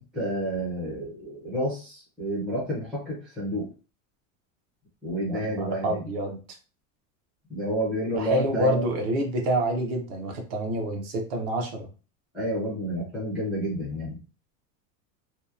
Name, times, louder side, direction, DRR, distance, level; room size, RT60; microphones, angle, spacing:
voice 1, 0.1-3.7 5.0-6.0 7.5-8.8 12.3-14.2, right 1 dB, ahead, -10 dB, 0.3 m, -30 dB
voice 2, 5.3-6.4 8.1-11.9, right 1 dB, 50° right, 4 dB, 0.6 m, -27 dB
2.8 x 2.1 x 2.3 m, 0.35 s
supercardioid pair, 180°, 40 cm